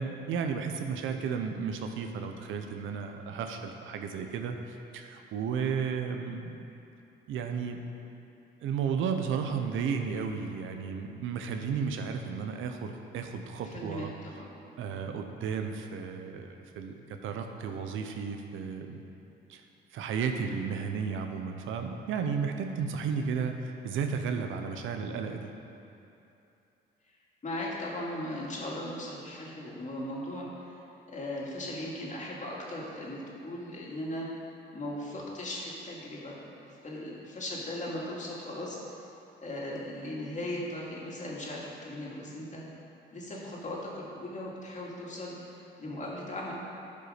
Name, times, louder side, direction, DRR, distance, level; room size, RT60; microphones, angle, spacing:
voice 1, 0.0-6.6 7.3-7.8 8.6-14.1 14.8-16.5 16.7-19.0 19.5-19.6 19.9-25.5, right 6 dB, 85° right, 5 dB, 0.8 m, -33 dB
voice 2, 13.6-14.1 14.4-14.5 15.0-15.2 27.4-30.7 31.1-34.3 34.7-36.4 36.8-39.0 39.4-42.6 43.1-46.5, left 1 dB, 40° left, -4 dB, 2.3 m, -38 dB
12.0 x 5.5 x 5.0 m, 2.8 s
cardioid pair, 90°, 20 cm